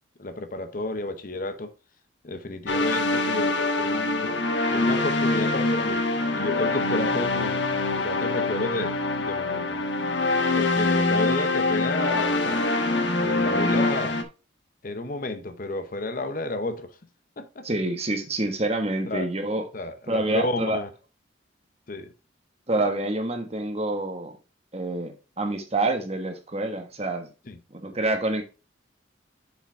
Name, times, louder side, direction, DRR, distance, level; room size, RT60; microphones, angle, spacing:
voice 1, 0.2-1.7 2.2-4.4 4.7-6.1 6.3-7.6 7.9-9.9 10.6-12.7 13.2-14.2 14.8-17.0 17.4-17.6 19.1-19.3 19.7-20.9 21.9-22.1 27.5-27.6, left 2 dB, 45° left, 0.7 m, -31 dB
sound 1, 2.7-14.2, left 2 dB, 65° left, 1.1 m, -24 dB
voice 2, 17.6-19.6 20.1-20.8 22.7-24.4 24.7-27.3 27.7-28.4, right 2 dB, 30° right, 1.3 m, -27 dB
6.9 x 5.1 x 4.6 m
head